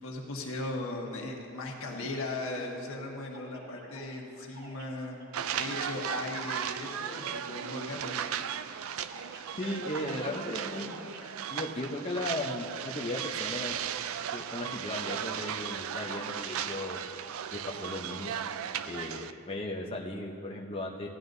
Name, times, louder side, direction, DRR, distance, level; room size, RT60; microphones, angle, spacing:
voice 1, 0.0-5.2 5.6-8.3, left 2 dB, 75° left, -1 dB, 1.5 m, -37 dB
sound 1, 3.3-11.8, equal, 50° right, 1.4 m, -53 dB
sound 2, 5.3-19.3, right 9 dB, 75° right, 0.4 m, -36 dB
voice 2, 9.6-11.1 11.5-13.8 14.3-17.0 17.5-18.3 18.9-21.1, left 1 dB, 25° left, -2 dB, 0.7 m, -36 dB
16.5 x 11.5 x 2.7 m, 2.6 s
head